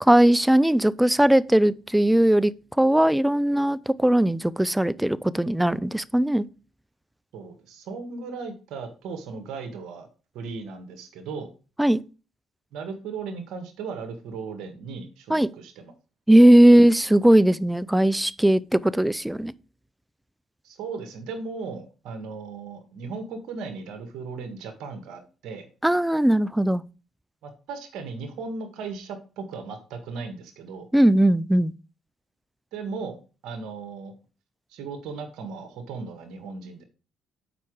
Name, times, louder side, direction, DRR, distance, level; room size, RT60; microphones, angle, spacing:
voice 1, 0.0-2.5 2.8-6.5 11.8-12.0 15.3-15.5 16.3-19.5 25.8-26.8 30.9-31.7, right 1 dB, 5° right, 0.4 m, -19 dB
voice 2, 7.3-10.1 10.3-11.5 12.7-15.9 20.6-25.7 27.4-30.9 32.7-33.2 33.4-34.1 34.7-36.8, right 4 dB, 75° right, 1.6 m, -36 dB
7.0 x 4.8 x 4.7 m
supercardioid pair, 75°, 0 cm